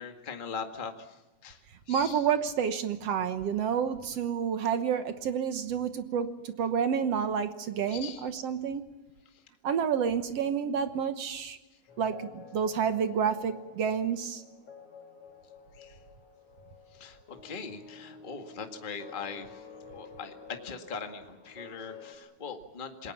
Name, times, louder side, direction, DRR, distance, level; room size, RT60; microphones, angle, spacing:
voice 1, 0.0-1.6 1.9-2.3 7.9-8.3 15.7-16.0 16.9-23.1, left 5 dB, 20° left, 5 dB, 1.5 m, -41 dB
voice 2, 1.9-8.8 9.6-11.6 12.0-14.4, right 7 dB, 60° right, 10 dB, 2.0 m, -29 dB
sound 1, 11.9-22.2, left 5 dB, 50° left, 4.3 m, -51 dB
27.5 x 21.0 x 7.3 m, 1.1 s
omnidirectional pair, 3.5 m